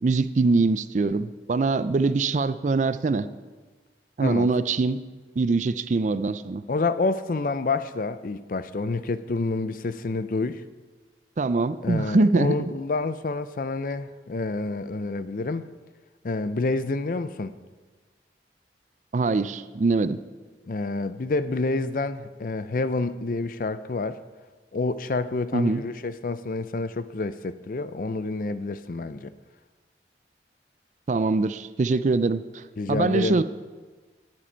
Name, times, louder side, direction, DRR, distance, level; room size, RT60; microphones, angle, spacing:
voice 1, 0.0-3.3 4.2-5.0 5.4-6.6 11.4-12.6 19.1-20.2 25.5-25.8 31.1-32.6 32.9-33.4, right 3 dB, 45° right, 14 dB, 0.4 m, -23 dB
voice 2, 6.7-10.6 11.8-15.7 16.2-17.5 20.6-24.2 24.7-29.3 32.8-33.4, left 3 dB, 50° left, 13 dB, 0.5 m, -28 dB
18.5 x 7.5 x 4.5 m, 1.4 s
head